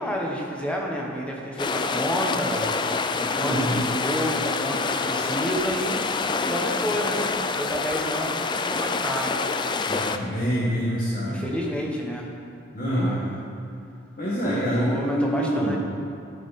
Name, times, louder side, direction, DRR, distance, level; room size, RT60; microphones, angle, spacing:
voice 1, 0.0-2.7 3.1-6.0 6.5-7.3 7.6-9.4 11.2-12.3 12.8-13.4 14.4-15.8, equal, 5° left, -2 dB, 1.2 m, -30 dB
sound 1, 1.6-10.2, left 4 dB, 25° left, 0.3 m, -27 dB
voice 2, 9.9-11.4 12.7-13.1 14.2-15.8, equal, 50° left, -8 dB, 1.6 m, -25 dB
13.5 x 5.9 x 4.2 m, 2.5 s
head